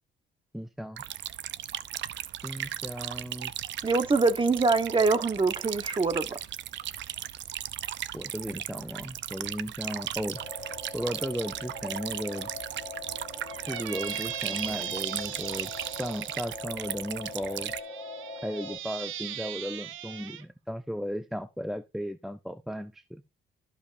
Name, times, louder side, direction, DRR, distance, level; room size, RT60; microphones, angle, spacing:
voice 1, 0.5-1.0 2.4-3.5 8.1-10.4 10.9-12.5 13.6-15.7 16.0-17.7 18.4-23.2, equal, ahead, 0.6 m, -35 dB
sound 1, 1.0-17.8, right 11 dB, 65° right, 0.6 m, -37 dB
voice 2, 3.8-6.4, right 3 dB, 25° right, 1.3 m, -24 dB
sound 2, 10.4-18.7, left 2 dB, 20° left, 4.6 m, -42 dB
Squeak, 13.5-16.5 17.4-20.4, right 11 dB, 85° right, 1.0 m, -39 dB
13.5 x 5.3 x 2.6 m
cardioid pair, 90°, 20 cm